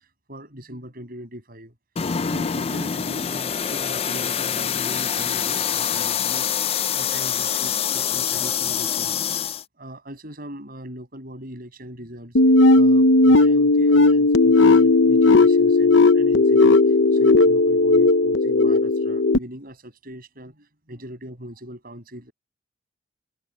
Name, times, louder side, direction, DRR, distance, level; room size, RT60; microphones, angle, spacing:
voice 1, 0.3-1.7 2.3-6.5 6.9-9.2 9.8-12.3 12.7-16.8 17.1-22.3, equal, 50° right, 7.8 m, -40 dB
sound 1, 2.0-9.6, left 8 dB, 30° left, 0.4 m, -25 dB
sound 2, 12.4-19.4, left 3 dB, 70° left, 0.8 m, -15 dB
head